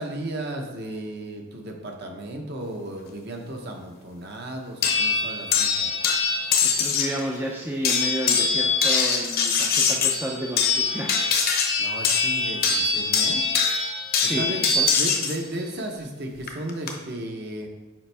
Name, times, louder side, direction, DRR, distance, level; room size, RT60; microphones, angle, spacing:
voice 1, 0.0-5.9 11.8-13.4 14.2-14.7 15.0-17.7, right 1 dB, 50° right, 2 dB, 0.9 m, -34 dB
sound 1, 4.8-7.2 7.8-15.4 16.5-16.9, left 5 dB, 45° left, 0.8 m, -23 dB
voice 2, 6.6-11.2 14.2-14.9, right 1 dB, 10° right, -1 dB, 0.4 m, -31 dB
7.2 x 5.1 x 3.4 m, 1.1 s
head